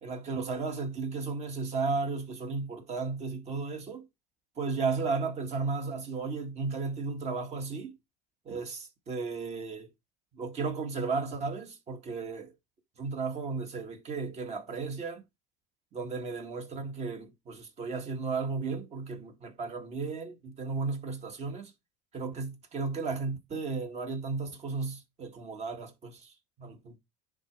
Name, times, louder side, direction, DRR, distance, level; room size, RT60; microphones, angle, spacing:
voice 1, 0.0-4.0 4.6-7.9 8.5-9.9 10.3-12.5 13.0-15.2 15.9-21.7 22.1-26.3 26.6-27.0, right 4 dB, 35° right, 2.0 m, -34 dB
9.9 x 3.9 x 4.7 m
supercardioid pair, 125°, 19 cm